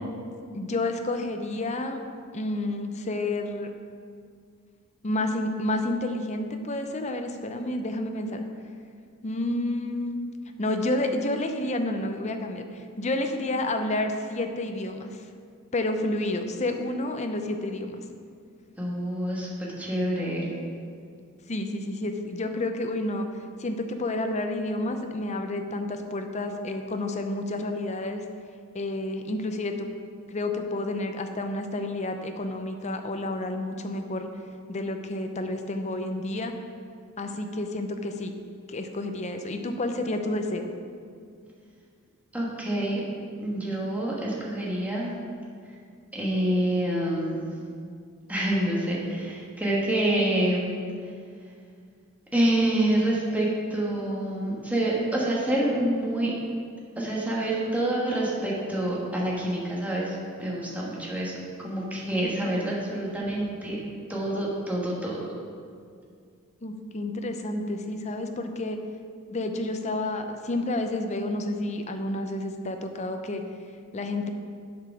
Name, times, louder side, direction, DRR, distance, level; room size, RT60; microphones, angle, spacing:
voice 1, 0.5-2.0 2.3-3.7 5.0-8.4 9.2-10.2 10.6-15.2 15.7-18.0 21.5-23.3 23.6-28.2 28.7-29.9 30.3-34.3 34.7-36.5 37.2-38.3 38.7-40.7 62.2-62.7 66.6-68.8 69.3-73.4 73.9-74.3, left 2 dB, 30° left, 6 dB, 0.6 m, -30 dB
voice 2, 18.8-20.5 42.3-43.0 43.4-45.1 46.1-47.5 48.3-50.7 52.3-56.3 57.0-61.3 61.6-63.8 64.1-65.2, right 1 dB, 5° right, -5 dB, 1.4 m, -27 dB
8.3 x 4.9 x 5.9 m, 2.2 s
head